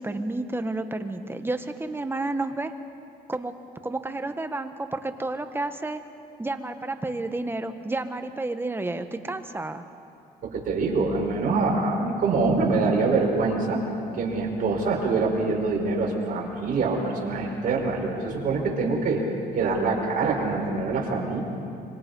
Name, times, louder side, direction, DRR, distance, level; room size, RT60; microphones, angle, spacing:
voice 1, 0.0-2.7 3.3-3.5 3.8-6.0 6.4-9.8, right 2 dB, 15° right, 8 dB, 1.3 m, -30 dB
voice 2, 10.4-13.8 14.1-19.2 19.5-21.4, right 3 dB, 55° right, -1 dB, 5.3 m, -25 dB
25.5 x 24.5 x 5.5 m, 2.6 s
cardioid pair, 110°, 17 cm